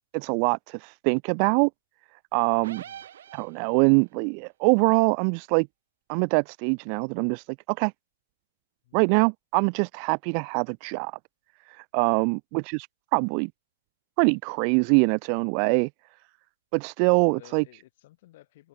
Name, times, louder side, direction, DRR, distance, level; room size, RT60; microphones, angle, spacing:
voice 1, 0.1-1.7 2.3-2.8 3.3-5.7 6.1-7.9 8.9-11.1 11.9-12.9 13.1-13.5 14.2-15.9 16.7-17.6, right 40 dB or more, 35° right, 0.4 m, -24 dB
sound 1, 2.6-4.0, right 10 dB, 55° right, 1.5 m, -44 dB
voice 2, 17.0-18.7, left 16 dB, 45° left, 5.1 m, -54 dB
figure-of-eight pair, 115°, 0 cm